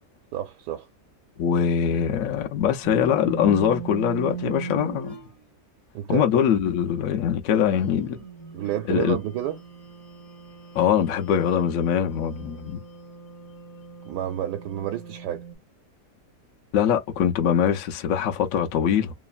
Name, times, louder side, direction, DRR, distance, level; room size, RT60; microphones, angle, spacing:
voice 1, 0.3-0.9 5.9-6.3 8.5-9.6 14.0-15.4, right 12 dB, 80° right, 1.2 m, -29 dB
voice 2, 1.4-5.1 6.1-8.2 8.9-9.2 10.7-12.8 16.7-19.1, left 8 dB, 70° left, 0.9 m, -23 dB
sound 1, 2.8-5.3 7.6-15.6, right 5 dB, 30° left, 0.7 m, -39 dB
3.1 x 2.0 x 2.4 m
omnidirectional pair, 1.8 m